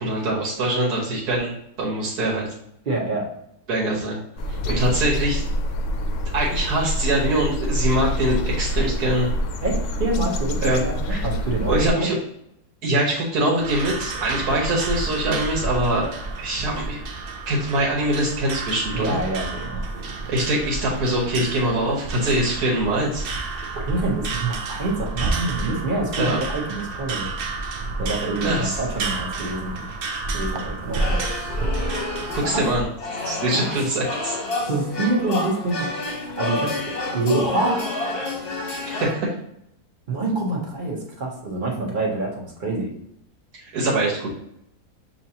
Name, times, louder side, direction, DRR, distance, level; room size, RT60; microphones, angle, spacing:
voice 1, 0.0-1.5 1.8-2.5 3.7-4.2 4.5-5.4 6.3-9.3 10.6-10.8 11.1-11.2 11.7-12.2 12.8-16.1 16.4-17.0 17.5-19.2 20.3-23.3 26.2-26.4 28.4-28.8 32.3-32.8 33.2-34.4 38.8-39.3 43.5-44.3, right 1 dB, 90° right, -4 dB, 1.6 m, -23 dB
voice 2, 2.8-3.3 9.6-10.6 10.8-12.1 18.9-19.8 23.7-27.3 28.0-29.9 30.3-31.2 32.3-32.6 33.2-33.7 34.7-36.8 37.1-37.8 40.1-42.9, right 2 dB, 35° right, -1 dB, 1.0 m, -26 dB
sound 1, 4.4-11.9, equal, 70° left, 0.8 m, -26 dB
sound 2, 13.6-32.8, right 3 dB, 65° right, 0.5 m, -30 dB
sound 3, 31.0-39.1, left 2 dB, 45° left, 0.9 m, -29 dB
6.3 x 2.9 x 2.8 m, 0.75 s
omnidirectional pair, 1.6 m